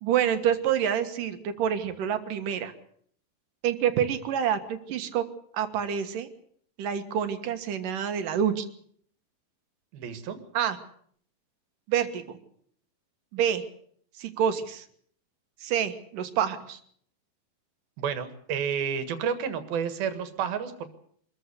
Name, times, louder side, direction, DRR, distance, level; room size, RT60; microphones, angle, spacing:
voice 1, 0.0-2.7 3.6-5.2 5.5-6.3 6.8-8.6 10.5-10.8 11.9-12.4 13.3-13.6 14.1-14.9 15.6-16.8, right 9 dB, 70° right, 9 dB, 3.1 m, -27 dB
voice 2, 9.9-10.4 18.0-20.9, right 7 dB, 85° right, 10 dB, 3.6 m, -30 dB
24.5 x 14.5 x 8.3 m, 0.62 s
omnidirectional pair, 4.2 m